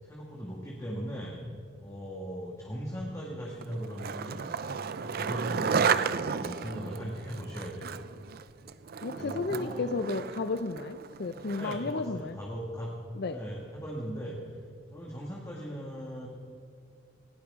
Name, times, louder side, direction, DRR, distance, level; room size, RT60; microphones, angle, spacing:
voice 1, 0.0-1.4 1.8-4.4 4.9-8.0 9.2-9.9 11.5-12.9 13.3-14.4 14.9-16.3, equal, 15° left, -3 dB, 2.0 m, -38 dB
Skateboard, 3.6-11.9, right 6 dB, 55° right, 0.5 m, -33 dB
voice 2, 9.0-12.4 13.1-13.4, left 3 dB, 60° left, 10 dB, 0.5 m, -33 dB
19.5 x 17.0 x 3.7 m, 2.4 s
head